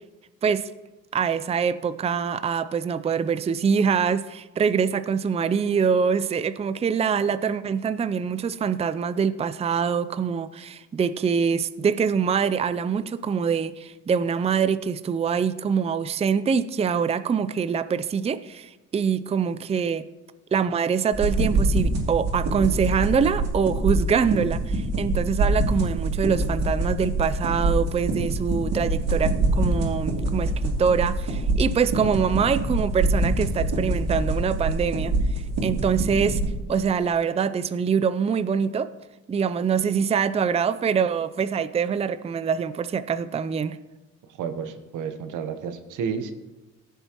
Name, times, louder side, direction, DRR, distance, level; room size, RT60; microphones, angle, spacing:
voice 1, 1.1-20.0 20.5-35.1 35.6-36.4 36.7-38.9 39.3-43.8, right 6 dB, 20° right, 13 dB, 0.4 m, -24 dB
sound 1, 21.1-36.5, right 2 dB, 60° right, 2.7 m, -25 dB
voice 2, 44.3-46.3, right 6 dB, 85° right, 9 dB, 1.0 m, -31 dB
15.5 x 6.8 x 3.0 m, 1.1 s
cardioid pair, 90°, 30 cm